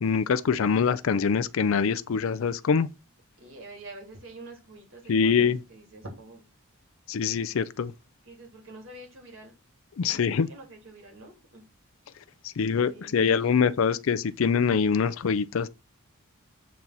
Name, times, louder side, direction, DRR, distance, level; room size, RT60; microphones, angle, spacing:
voice 1, 0.0-2.9 5.1-5.6 7.1-7.9 10.0-10.5 12.4-15.7, left 6 dB, 70° left, 0.4 m, -24 dB
voice 2, 3.4-6.5 7.5-7.7 8.2-9.5 10.1-10.2 10.5-11.7 12.9-13.5, right 2 dB, 65° right, 3.3 m, -46 dB
7.3 x 4.0 x 6.0 m
head